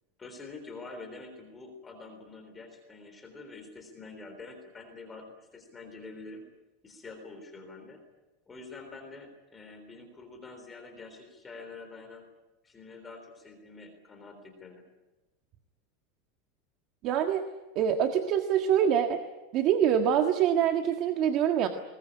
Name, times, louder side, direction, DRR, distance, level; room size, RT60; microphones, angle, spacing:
voice 1, 0.2-6.4 6.8-8.0 8.5-12.2 12.6-14.8, left 3 dB, 15° left, 5 dB, 3.6 m, -46 dB
voice 2, 17.0-17.4 17.7-19.2 19.5-21.7, right 9 dB, 40° right, 6 dB, 1.6 m, -25 dB
21.0 x 21.0 x 9.9 m, 1.1 s
supercardioid pair, 165°, 0 cm